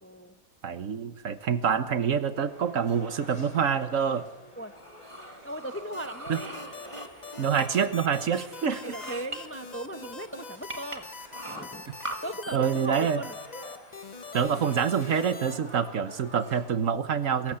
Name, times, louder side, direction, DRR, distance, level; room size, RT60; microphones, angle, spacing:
voice 1, 0.0-0.4 4.6-4.7 5.4-6.5 8.8-11.1 11.5-11.8 12.2-13.4, right 1 dB, 15° left, 9 dB, 0.5 m, -38 dB
voice 2, 0.6-4.2 6.3-6.4 7.4-8.9 12.5-13.2 14.3-17.6, right 7 dB, 65° right, 12 dB, 1.4 m, -26 dB
sound 1, 2.3-16.6, left 1 dB, 80° left, 7.4 m, -50 dB
sound 2, 4.8-7.9 8.2-9.4 10.0-10.1 10.7-12.2, right 1 dB, 20° right, 1.8 m, -41 dB
sound 3, 5.9-15.6, left 4 dB, 30° left, 1.1 m, -43 dB
22.5 x 14.0 x 9.8 m, 1.0 s
omnidirectional pair, 1.5 m